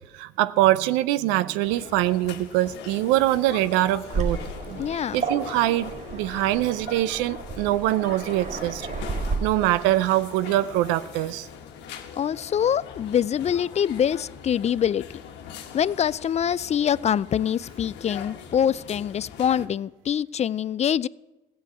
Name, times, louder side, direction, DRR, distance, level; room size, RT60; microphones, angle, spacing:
voice 1, 0.1-4.4 4.9-8.9 9.4-11.5, right 15 dB, 80° right, 16 dB, 0.6 m, -23 dB
sound 1, 1.6-19.7, left 7 dB, 75° left, 1.3 m, -42 dB
Waves surf, 4.1-9.4, right 4 dB, 45° right, 4.8 m, -32 dB
voice 2, 4.8-5.2 12.2-15.0 15.7-21.1, left 9 dB, 40° left, 22 dB, 0.4 m, -24 dB
15.0 x 7.9 x 7.9 m, 1.1 s
hypercardioid pair, 55°, 18 cm